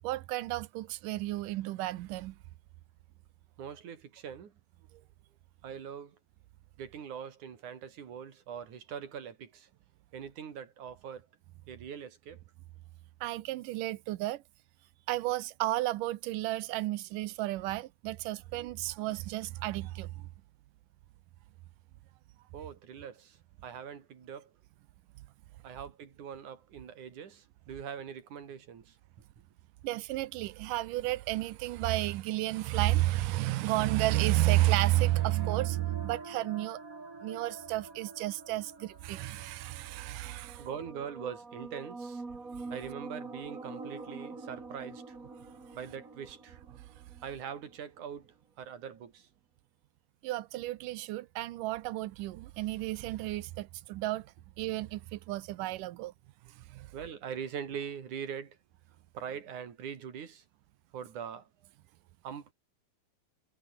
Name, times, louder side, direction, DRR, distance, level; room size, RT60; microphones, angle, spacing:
voice 1, 0.0-2.4 13.2-14.4 15.1-20.3 29.8-36.8 37.2-40.6 50.2-54.3 54.6-56.1 56.7-56.9, right 16 dB, 75° right, 2.1 m, -32 dB
voice 2, 3.6-4.5 5.6-6.2 6.8-9.7 10.1-11.3 11.7-12.4 22.5-24.5 25.6-29.0 40.6-42.2 42.7-45.2 45.7-46.6 47.2-49.3 56.9-58.6 59.1-60.4 60.9-61.5 62.2-62.5, right 8 dB, 55° right, 4.0 m, -42 dB
sound 1, 34.1-47.7, right 3 dB, 20° right, 3.4 m, -46 dB
omnidirectional pair, 4.4 m